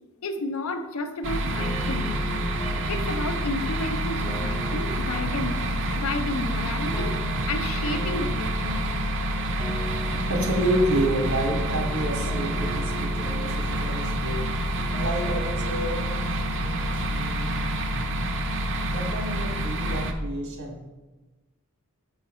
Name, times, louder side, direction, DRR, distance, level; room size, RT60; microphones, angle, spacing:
voice 1, 0.2-2.1 2.9-5.6 6.0-7.2 7.5-8.8 10.1-10.3, left 2 dB, 80° left, 8 dB, 0.6 m, -31 dB
sound 1, 1.2-20.1, right 1 dB, 60° right, 0.5 m, -28 dB
sound 2, 1.5-17.2, right 1 dB, 15° left, 0.5 m, -40 dB
voice 2, 10.3-14.5 14.9-16.0 17.1-17.6 18.9-20.8, right 1 dB, 85° right, 1 dB, 1.4 m, -29 dB
5.6 x 5.6 x 3.0 m, 1.2 s
head